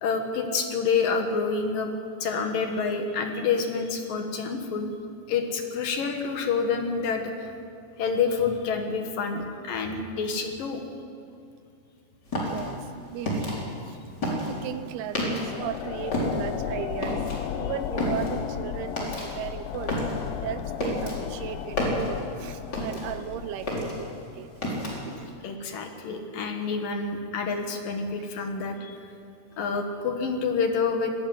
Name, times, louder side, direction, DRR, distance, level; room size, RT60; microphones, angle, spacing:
voice 1, 0.0-1.9 2.2-4.9 5.3-7.5 8.0-10.8 25.4-29.0 29.6-31.1, left 5 dB, 65° left, 4 dB, 3.1 m, -28 dB
sound 1, 12.3-15.7 16.0-23.3 23.5-25.2, left 1 dB, 25° left, 4.5 m, -30 dB
voice 2, 12.3-12.9 13.1-13.5 13.8-14.0 14.2-17.2 17.5-19.9 20.4-24.5 25.1-25.3, right 11 dB, 80° right, 12 dB, 2.7 m, -36 dB
sound 2, 15.1-24.5, left 13 dB, 80° left, 2.2 m, -35 dB
20.5 x 15.5 x 9.5 m, 2.5 s
omnidirectional pair, 4.6 m